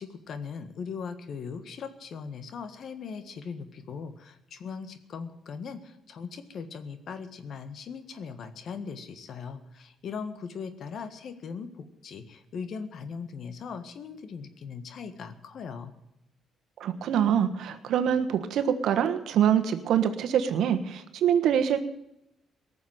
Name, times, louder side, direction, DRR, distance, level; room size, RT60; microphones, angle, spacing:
voice 1, 0.0-15.9, left 5 dB, 60° left, 10 dB, 1.6 m, -39 dB
voice 2, 16.8-21.8, right 9 dB, 75° right, 9 dB, 1.3 m, -25 dB
18.5 x 7.1 x 9.1 m, 0.86 s
cardioid pair, 90°, 0 cm